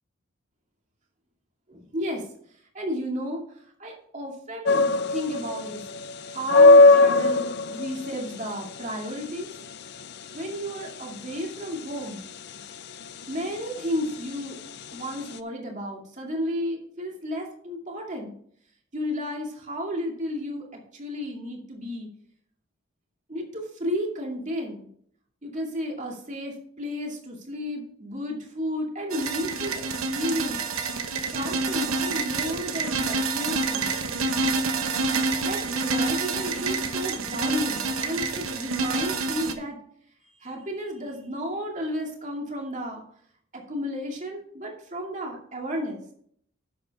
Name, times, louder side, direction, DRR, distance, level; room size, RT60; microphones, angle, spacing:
voice 1, 1.7-2.2 2.7-3.4 3.8-5.8 6.3-9.5 10.3-12.2 13.3-14.6 14.9-18.3 18.9-20.7 20.9-22.1 23.3-24.9 25.4-30.6 31.3-33.9 35.4-39.8 40.4-43.0 43.5-46.0, equal, 35° right, 0 dB, 2.4 m, -32 dB
sound 1, 4.6-15.4, left 2 dB, 50° left, 0.5 m, -21 dB
sound 2, 29.1-39.5, right 3 dB, 80° right, 1.1 m, -28 dB
11.0 x 7.6 x 3.6 m, 0.62 s
head